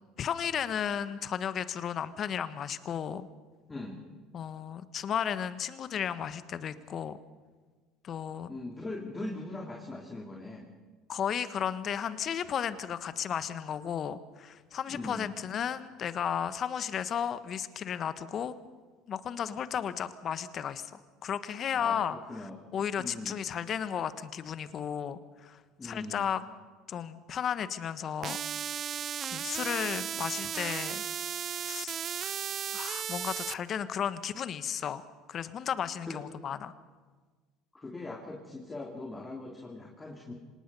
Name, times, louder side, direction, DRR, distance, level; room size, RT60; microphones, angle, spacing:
voice 1, 0.2-3.3 4.3-7.2 8.0-8.5 11.1-18.5 19.1-26.4 26.9-28.4 29.3-31.0 31.5-32.3 32.7-35.0 35.3-36.7, left 8 dB, 45° left, 13 dB, 1.2 m, -34 dB
voice 2, 3.7-4.0 8.5-10.7 14.9-15.3 21.7-22.6 23.0-23.4 25.8-26.2 30.1-30.2 36.1-36.2 37.8-40.3, left 2 dB, 20° left, 0 dB, 2.9 m, -41 dB
sound 1, 28.2-33.5, right 9 dB, 45° right, 0.5 m, -35 dB
26.0 x 19.0 x 5.5 m, 1.4 s
hypercardioid pair, 80°, 0 cm